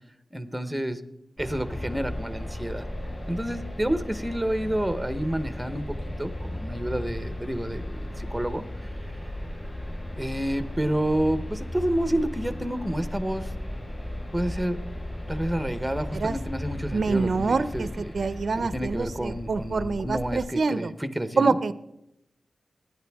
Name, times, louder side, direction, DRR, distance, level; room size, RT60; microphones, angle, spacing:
voice 1, 0.3-1.0 1.4-2.8 3.3-8.6 10.2-13.5 14.3-14.8 15.3-18.1 18.5-21.6, right 1 dB, 5° right, 10 dB, 0.8 m, -29 dB
sound 1, 1.4-20.4, left 1 dB, 20° left, 4.1 m, -35 dB
voice 2, 16.9-20.9 21.4-21.7, right 4 dB, 50° right, 14 dB, 0.5 m, -26 dB
25.0 x 11.0 x 3.5 m, 0.88 s
wide cardioid pair, 170°, 0 cm